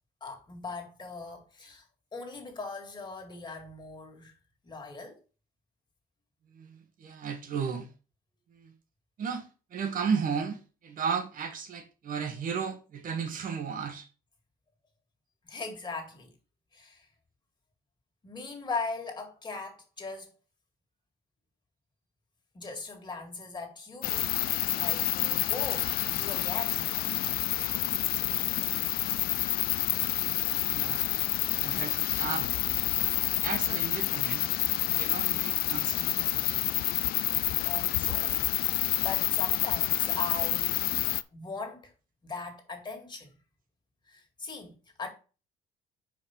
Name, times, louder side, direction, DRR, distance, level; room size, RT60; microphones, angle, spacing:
voice 1, 0.2-1.8 2.1-4.3 4.6-5.2 15.5-16.3 16.7-17.1 18.2-20.3 22.5-24.3 24.7-26.9 37.6-40.8 41.3-41.9 42.2-43.3 44.1-45.1, left 4 dB, 25° left, 2.1 m, -39 dB
voice 2, 6.5-7.9 8.5-8.7 9.2-14.1 30.7-31.1 31.6-32.5 33.4-34.4 34.9-36.7, right 6 dB, 55° right, 1.5 m, -34 dB
sound 1, 24.0-41.2, left 15 dB, 65° left, 0.4 m, -28 dB
5.1 x 5.0 x 5.7 m
cardioid pair, 110°, 17 cm